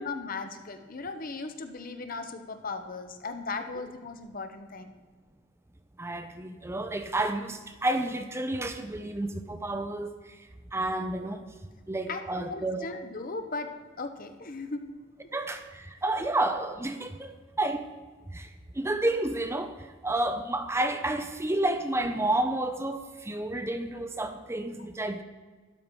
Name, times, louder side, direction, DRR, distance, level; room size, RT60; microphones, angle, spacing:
voice 1, 0.0-4.9 12.1-14.9 16.2-16.3, left 3 dB, 45° left, 7 dB, 1.0 m, -37 dB
voice 2, 6.0-10.1 10.7-11.4 11.9-12.9 15.3-17.9 18.3-18.5 18.7-25.2, right 2 dB, 15° right, 8 dB, 0.6 m, -30 dB
12.5 x 11.5 x 4.7 m, 1.4 s
head